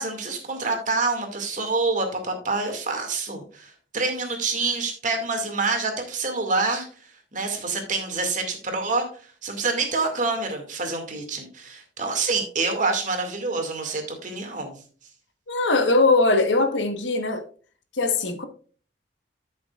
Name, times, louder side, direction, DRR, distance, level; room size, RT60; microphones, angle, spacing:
voice 1, 0.0-6.9 7.3-9.1 9.4-14.8, right 3 dB, 40° right, 2.3 m, -27 dB
voice 2, 15.5-17.4 17.9-18.4, left 3 dB, 70° left, 1.4 m, -21 dB
13.0 x 6.6 x 2.5 m
head